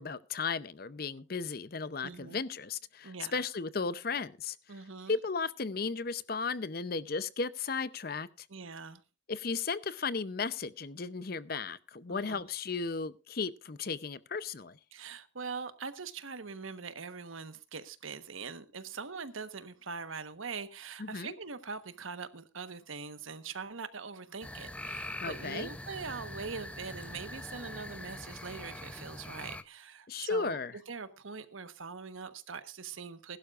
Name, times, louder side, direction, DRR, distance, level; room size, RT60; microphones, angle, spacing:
voice 1, 0.0-4.6 5.1-8.5 9.3-14.8 21.0-21.3 25.2-25.7 30.1-30.8, left 4 dB, 50° left, 0.6 m, -35 dB
voice 2, 2.0-2.4 3.0-3.4 4.7-5.2 8.5-9.0 12.1-12.4 14.9-30.6 30.9-33.4, right 5 dB, 90° right, 1.2 m, -42 dB
sound 1, 24.4-29.6, left 1 dB, 5° left, 0.6 m, -43 dB
20.5 x 12.0 x 2.5 m
head